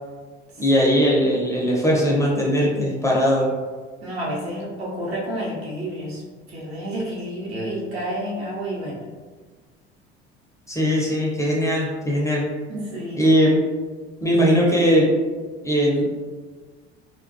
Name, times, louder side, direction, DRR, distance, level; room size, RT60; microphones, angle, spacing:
voice 1, 0.6-3.5 10.7-12.4 13.1-13.6 14.2-15.1 15.6-16.1, equal, 10° left, -4 dB, 0.4 m, -19 dB
voice 2, 4.0-6.2 6.5-9.1 12.7-13.2, right 1 dB, 75° right, -5 dB, 0.8 m, -30 dB
2.2 x 2.2 x 2.6 m, 1.4 s
figure-of-eight pair, 60°, 32 cm